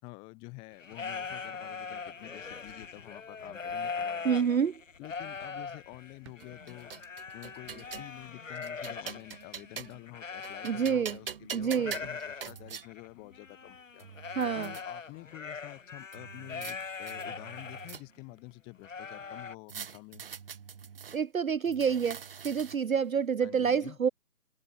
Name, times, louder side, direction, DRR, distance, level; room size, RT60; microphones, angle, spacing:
voice 1, 0.0-4.6 5.0-6.9 7.3-14.1 14.5-20.2 23.4-24.0, left 28 dB, 10° left, 4.1 m, -48 dB
sound 1, 0.7-11.3 11.6-18.0 18.4-18.5 18.8-19.6, left 5 dB, 50° left, 3.2 m, -41 dB
voice 2, 4.2-4.7 10.6-11.2 11.5-12.0 14.4-14.7 21.1-24.1, right 7 dB, 60° right, 0.6 m, -28 dB
sound 2, 5.6-5.7 6.2-7.5 7.9-8.0 8.5-8.7 10.1-10.5 12.0-12.2, right 15 dB, 15° right, 5.3 m, -59 dB
sound 3, 6.4-8.1 8.6-10.1 10.4-12.9 13.6-13.7 14.0-14.8 16.1-16.8 17.1-18.3 19.7-21.2 21.7-23.0, right 7 dB, 35° right, 4.7 m, -44 dB
figure-of-eight pair, 165°, 49 cm